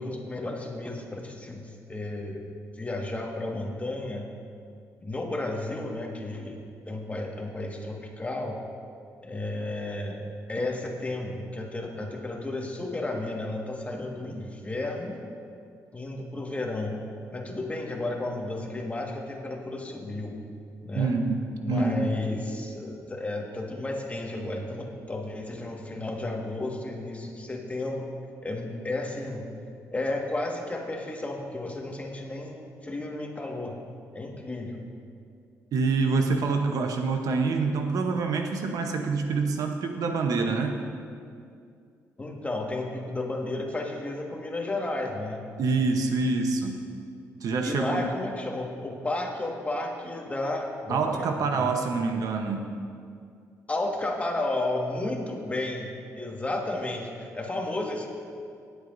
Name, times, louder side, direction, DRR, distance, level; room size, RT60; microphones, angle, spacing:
voice 1, 0.0-2.4 2.8-4.3 5.0-8.6 9.2-15.3 15.9-17.0 17.3-20.4 20.8-21.1 21.6-28.1 28.4-29.5 29.9-33.8 34.1-34.8 42.2-45.4 47.6-51.7 53.7-58.1, left 2 dB, 20° left, 0 dB, 1.7 m, -33 dB
voice 2, 20.9-22.2 35.7-40.8 45.6-46.9 47.4-48.1 50.9-52.7, right 4 dB, 70° right, 4 dB, 0.9 m, -26 dB
20.0 x 8.1 x 2.7 m, 2.3 s
cardioid pair, 70°, 6 cm